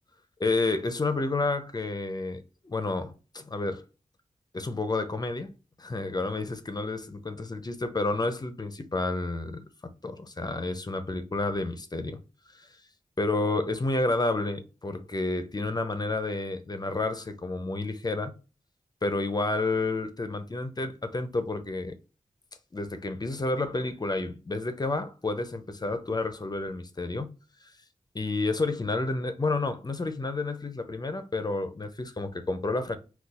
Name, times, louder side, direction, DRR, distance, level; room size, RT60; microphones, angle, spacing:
voice 1, 0.4-3.8 4.5-5.5 5.8-12.2 12.5-12.7 13.2-18.3 19.0-22.0 22.7-27.3 28.1-33.0, left 2 dB, 30° left, 0.5 m, -30 dB
3.9 x 2.3 x 2.3 m
wide cardioid pair, 65°, 13 cm